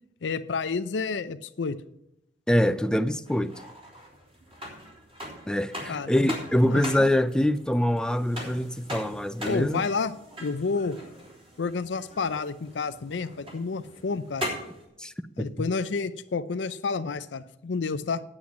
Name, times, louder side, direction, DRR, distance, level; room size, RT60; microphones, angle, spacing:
voice 1, 0.2-1.8 5.9-6.3 6.6-6.8 9.4-10.1 10.4-11.0 11.6-14.5 15.4-18.2, left 4 dB, 85° left, 0.5 m, -30 dB
voice 2, 2.5-3.5 5.5-9.8 15.0-15.7, left 1 dB, 5° left, 0.4 m, -25 dB
sound 1, 3.3-14.8, equal, 35° right, 3.6 m, -41 dB
9.6 x 8.8 x 5.9 m
head